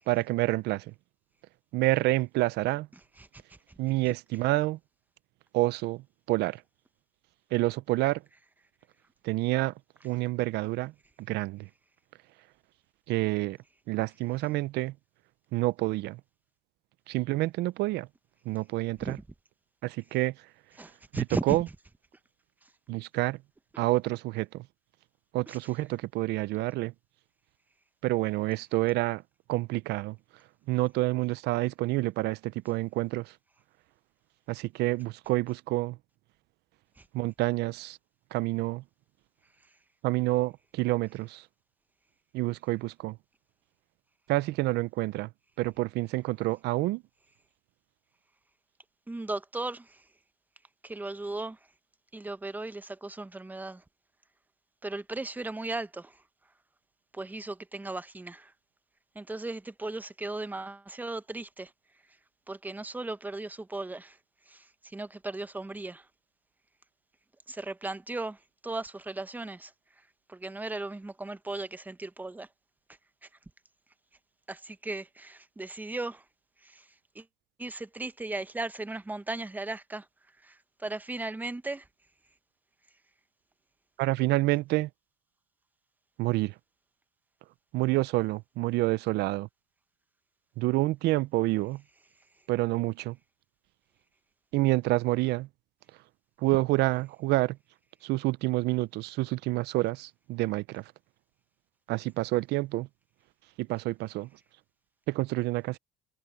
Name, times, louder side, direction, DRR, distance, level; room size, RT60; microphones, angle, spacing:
voice 1, 0.1-0.9 1.7-2.9 3.8-4.8 5.5-6.0 6.3-6.6 7.5-8.2 9.2-9.7 10.0-10.9 11.3-11.7 13.1-13.6 13.9-14.9 15.5-16.2 17.1-18.1 18.5-19.2 19.8-20.3 21.1-21.7 22.9-23.4 23.8-24.6 25.3-26.9 28.0-29.2 29.5-30.2 30.7-33.3 34.5-36.0 37.1-38.0 38.3-38.8 40.0-41.4 42.3-43.2 44.3-45.3 45.6-47.0 84.0-84.9 86.2-86.5 87.7-89.5 90.6-91.8 92.5-93.2 94.5-95.5 96.4-97.6 98.0-100.8 101.9-102.9 103.6-104.3 105.1-105.8, right 19 dB, 80° right, 0.5 m, -28 dB
voice 2, 20.8-21.6 25.5-25.6 49.1-49.8 50.8-51.6 52.1-53.8 54.8-56.1 57.1-58.5 59.2-61.7 62.5-64.1 64.5-64.6 64.9-66.0 67.5-68.4 68.6-69.7 70.3-72.5 74.5-76.2 77.2-77.3 77.6-80.0 80.5-80.6 80.8-81.8, right 2 dB, 10° right, 0.8 m, -36 dB
cardioid pair, 110°, 17 cm